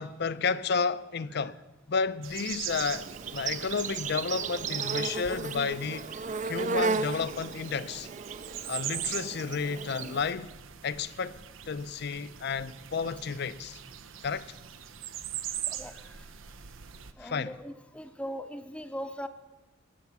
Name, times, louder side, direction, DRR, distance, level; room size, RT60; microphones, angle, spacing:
voice 1, 0.0-1.6 1.9-6.1 6.4-8.1 8.7-10.5 10.8-11.4 11.7-13.8 14.2-14.5 17.2-17.6, left 5 dB, 55° left, 0.5 m, -31 dB
sound 1, 2.2-17.1, right 10 dB, 90° right, 0.7 m, -42 dB
Insect, 2.7-10.3, right 4 dB, 40° right, 0.5 m, -35 dB
voice 2, 15.7-16.0 17.2-19.3, equal, 5° left, 0.6 m, -39 dB
20.0 x 7.1 x 7.1 m
head